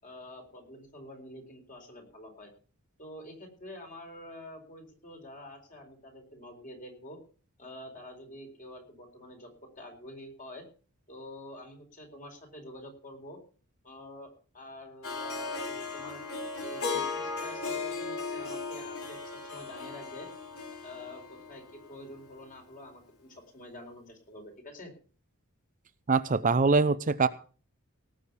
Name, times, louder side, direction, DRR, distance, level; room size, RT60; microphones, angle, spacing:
voice 1, 0.0-2.5 3.0-7.2 7.6-10.6 11.1-13.4 13.8-16.2 16.6-20.3 20.8-24.9, left 1 dB, 35° left, 3 dB, 4.4 m, -47 dB
Harp, 15.0-22.2, left 4 dB, 85° left, 4.0 m, -37 dB
voice 2, 26.1-27.3, right 4 dB, 35° right, 13 dB, 0.6 m, -23 dB
18.5 x 6.5 x 7.0 m, 0.40 s
head